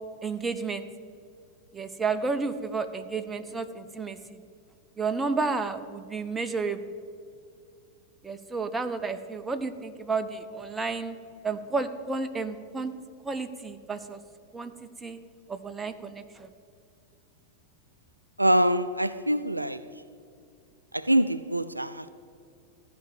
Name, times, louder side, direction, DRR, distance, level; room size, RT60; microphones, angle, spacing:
voice 1, 0.2-0.8 1.7-4.4 5.0-6.8 8.2-11.2 11.4-12.9 13.2-14.2 14.5-14.7 15.0-15.2 15.5-16.5, right 4 dB, 10° right, 0.6 m, -31 dB
voice 2, 18.4-19.8 20.9-22.1, right 1 dB, 85° right, 0.3 m, -24 dB
14.0 x 5.2 x 9.3 m
figure-of-eight pair, 90°, 0 cm